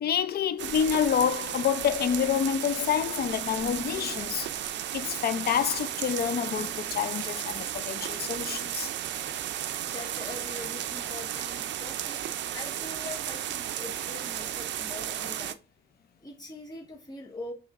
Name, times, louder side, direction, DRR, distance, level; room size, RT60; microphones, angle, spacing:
voice 1, 0.0-4.5 4.9-8.9, left 8 dB, 50° left, 0.5 m, -28 dB
sound 1, 0.6-15.5, right 11 dB, 65° right, 0.5 m, -34 dB
voice 2, 9.9-12.2 12.5-15.6 16.2-17.5, left 3 dB, 20° left, 1.8 m, -43 dB
5.9 x 3.1 x 2.5 m
cardioid pair, 90°, 20 cm